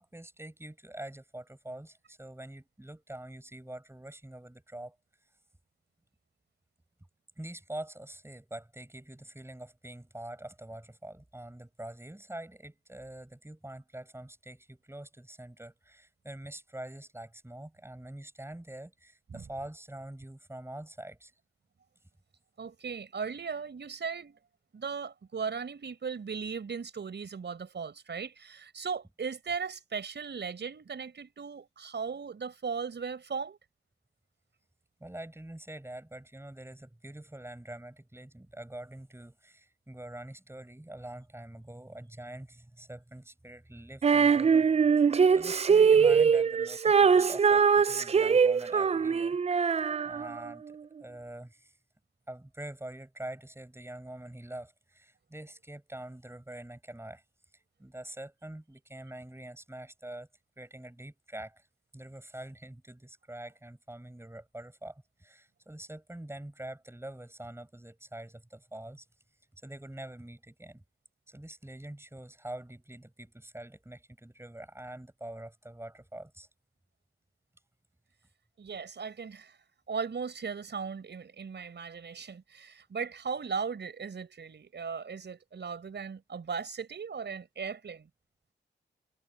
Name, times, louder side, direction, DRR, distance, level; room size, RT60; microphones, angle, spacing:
voice 1, 0.0-5.0 7.4-21.3 35.0-44.7 45.0-49.4 49.8-51.7 52.3-57.2 57.8-60.3 60.6-61.7 61.9-69.0 69.6-70.8 71.3-76.5, right 1 dB, 10° right, 6.5 m, -45 dB
voice 2, 22.6-24.4 24.7-33.6 78.6-79.6 79.9-88.1, right 5 dB, 60° right, 5.9 m, -37 dB
Female singing, 44.0-50.5, right 6 dB, 30° right, 0.4 m, -23 dB
supercardioid pair, 45°, 20 cm